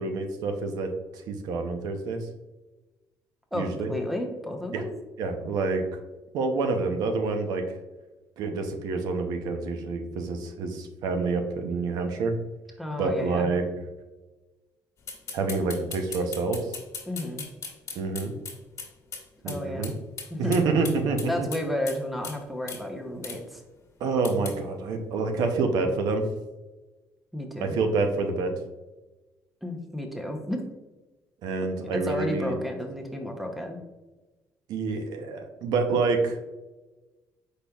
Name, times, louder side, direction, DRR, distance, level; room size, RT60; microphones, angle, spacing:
voice 1, 0.0-2.3 3.5-3.9 4.7-4.8 5.2-5.9 6.3-7.6 8.4-12.3 13.0-13.6 15.3-16.8 17.9-18.4 19.4-19.9 20.4-21.5 24.0-26.3 27.6-28.6 31.4-32.6 34.7-36.4, right 4 dB, 80° right, 5 dB, 0.7 m, -27 dB
voice 2, 3.5-4.9 12.8-13.5 17.1-17.4 19.4-19.9 20.3-20.6 21.3-23.6 27.3-27.8 29.6-30.6 31.9-33.8, left 1 dB, ahead, 3 dB, 0.8 m, -32 dB
sound 1, 15.1-19.2 19.5-19.6 19.8-19.9 20.2-22.0 22.2-22.4 22.7-22.8 23.2-23.4 24.3-24.6, left 5 dB, 50° left, 1.5 m, -37 dB
5.0 x 4.3 x 2.3 m, 1.1 s
cardioid pair, 105°, 7 cm